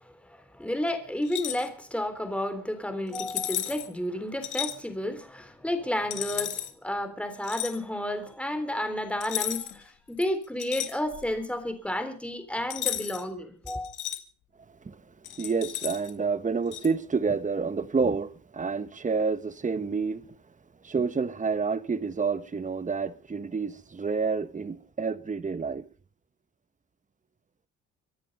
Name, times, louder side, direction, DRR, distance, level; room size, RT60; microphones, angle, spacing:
voice 1, 0.0-13.9, left 1 dB, 5° left, 3.6 m, -32 dB
sound 1, 1.2-1.7 3.1-3.9 4.4-4.8 6.1-6.7 7.4-7.8 9.2-9.8 10.2-11.4 12.7-13.2 13.7-14.2 15.2-16.1 16.7-16.9, left 12 dB, 85° left, 2.0 m, -33 dB
voice 2, 15.4-20.3 20.8-25.9, right 5 dB, 25° right, 1.2 m, -29 dB
24.5 x 10.5 x 5.4 m
cardioid pair, 90°, 30 cm